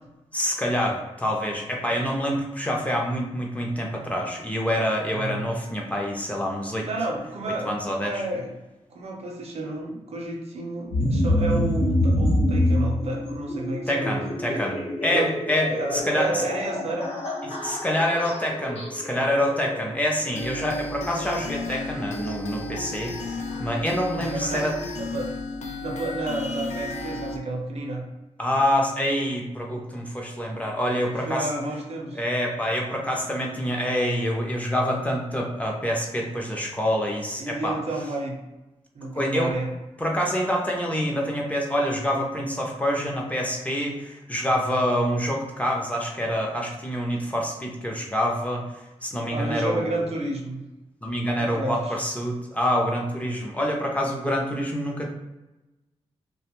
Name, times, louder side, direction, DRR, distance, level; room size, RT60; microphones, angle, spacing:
voice 1, 0.3-6.9 7.6-8.2 13.9-16.4 17.4-24.8 28.4-31.5 32.1-37.7 39.1-39.5 40.0-48.6 49.0-50.0 51.0-55.1, equal, 10° left, -1 dB, 0.5 m, -26 dB
voice 2, 5.1-5.5 6.8-8.5 8.9-14.3 15.1-15.3 15.7-17.1 24.2-24.7 25.0-25.3 25.8-28.0 31.1-32.2 37.4-38.5 38.9-39.7 49.3-50.6 51.4-52.0, right 2 dB, 65° right, 1 dB, 0.6 m, -31 dB
sound 1, 10.9-23.6, left 1 dB, 65° left, 0.8 m, -27 dB
sound 2, 20.4-27.4, left 2 dB, 85° left, 0.4 m, -34 dB
2.5 x 2.2 x 2.9 m, 1.0 s
wide cardioid pair, 95°, 11 cm